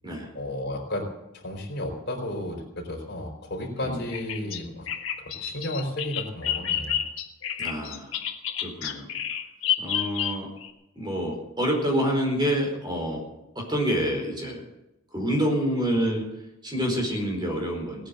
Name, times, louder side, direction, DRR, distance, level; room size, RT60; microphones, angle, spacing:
voice 1, 0.3-1.1 1.3-4.9 5.4-7.0, left 1 dB, 50° left, 1 dB, 4.2 m, -33 dB
voice 2, 3.8-4.1 7.6-8.2 8.6-9.1 9.8-10.5 10.9-13.2 13.5-14.6 15.1-16.2 16.6-18.1, equal, 20° right, 0 dB, 4.6 m, -27 dB
Bird vocalization bird call bird song, 4.1-10.7, left 9 dB, 70° left, 1.6 m, -30 dB
18.5 x 9.5 x 7.8 m, 0.88 s
head